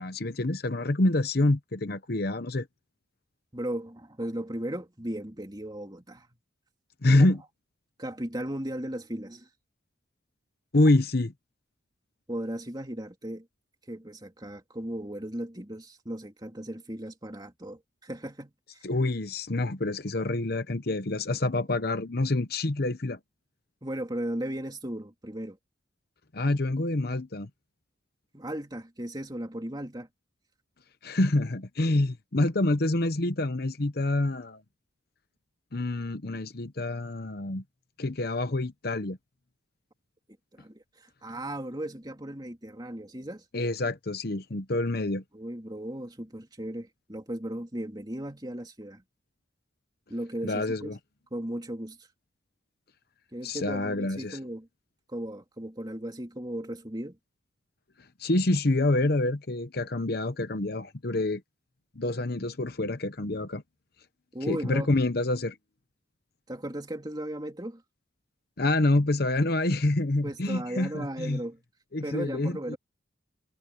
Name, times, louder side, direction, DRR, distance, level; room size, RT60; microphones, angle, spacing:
voice 1, 0.0-2.7 7.0-7.4 10.7-11.3 18.8-23.2 26.3-27.5 31.0-34.6 35.7-37.6 38.0-39.2 43.5-45.2 50.4-51.0 53.4-54.4 58.2-61.4 62.0-63.6 64.5-65.6 68.6-71.4 71.9-72.8, left 2 dB, 50° left, 0.9 m, -27 dB
voice 2, 3.5-6.3 8.0-9.5 12.3-13.5 13.9-18.8 23.8-25.6 28.3-30.1 40.5-43.4 45.3-49.0 50.1-51.0 51.3-52.0 53.3-54.7 55.1-57.2 64.3-64.9 66.5-67.8 70.2-71.6 72.0-72.8, right 1 dB, 20° right, 3.1 m, -36 dB
head